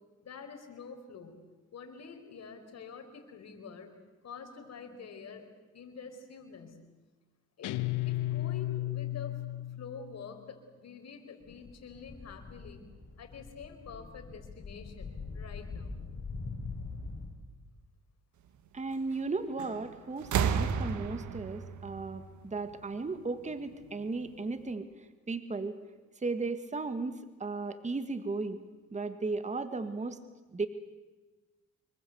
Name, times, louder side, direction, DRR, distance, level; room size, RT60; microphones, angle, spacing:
voice 1, 0.2-1.4 1.7-3.9 4.2-5.5 5.7-6.8 7.6-12.9 13.2-16.0, left 5 dB, 60° left, 5 dB, 4.7 m, -47 dB
Guitar, 7.6-10.2, left 16 dB, 85° left, 1.0 m, -34 dB
sound 1, 11.4-17.3, left 4 dB, 40° left, 6.1 m, -43 dB
voice 2, 18.7-25.8 26.2-28.6 28.9-30.2 30.5-30.7, right 3 dB, 25° right, 10 dB, 1.8 m, -35 dB
sound 2, 19.6-19.9 20.2-23.0 24.1-24.2, right 7 dB, 75° right, 1.7 m, -32 dB
26.0 x 22.5 x 8.1 m, 1.2 s
cardioid pair, 90°, 30 cm